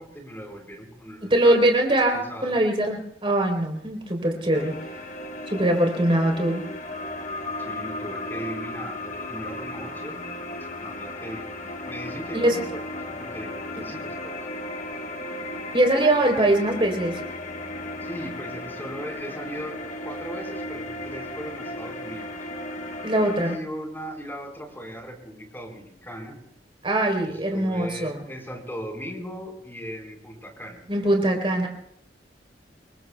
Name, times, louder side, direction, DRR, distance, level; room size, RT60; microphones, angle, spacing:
voice 1, 0.0-1.8 2.1-2.6 5.5-5.8 7.6-10.3 10.8-11.5 11.9-14.5 18.0-19.8 20.0-22.3 23.4-26.4 27.2-30.8, equal, 10° left, 1 dB, 4.3 m, -38 dB
voice 2, 1.3-4.7 5.5-6.6 12.3-12.6 15.7-17.2 23.0-23.6 26.8-28.2 30.9-31.7, right 1 dB, 30° right, 3 dB, 3.6 m, -22 dB
sound 1, 4.5-23.6, left 1 dB, 45° left, 1.1 m, -35 dB
27.5 x 22.5 x 2.3 m, 0.72 s
head